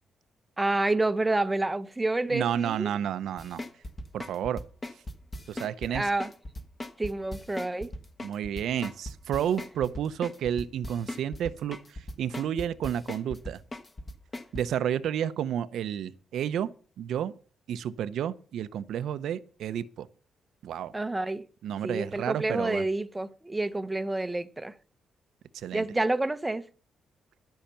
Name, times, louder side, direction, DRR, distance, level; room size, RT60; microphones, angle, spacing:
voice 1, 0.6-2.9 5.9-6.3 7.0-7.9 20.9-21.4 21.8-24.7 25.7-26.6, right 2 dB, 15° right, 0.8 m, -28 dB
voice 2, 2.3-3.6 4.1-4.6 5.5-6.1 8.2-11.8 12.2-13.6 14.5-16.7 17.0-17.3 17.7-20.1 20.6-20.9 21.6-22.8 25.5-25.9, right 9 dB, 80° right, 0.7 m, -31 dB
sound 1, 3.4-14.6, left 1 dB, 25° left, 1.3 m, -38 dB
13.0 x 5.7 x 6.9 m
cardioid pair, 125°, 0 cm